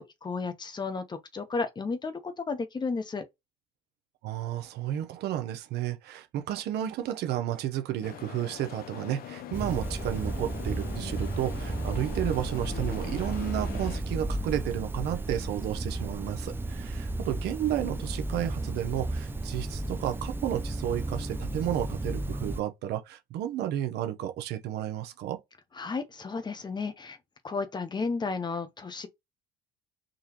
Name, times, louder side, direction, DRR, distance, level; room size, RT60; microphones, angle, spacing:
voice 1, 0.0-3.3 25.8-27.2 27.4-29.1, left 4 dB, 25° left, 0.8 m, -33 dB
voice 2, 4.2-25.4, right 12 dB, 75° right, 0.8 m, -32 dB
sound 1, 8.0-14.0, left 9 dB, 60° left, 0.6 m, -42 dB
sound 2, 9.5-22.6, right 2 dB, 10° right, 0.5 m, -33 dB
3.9 x 2.9 x 2.8 m
cardioid pair, 110°, 17 cm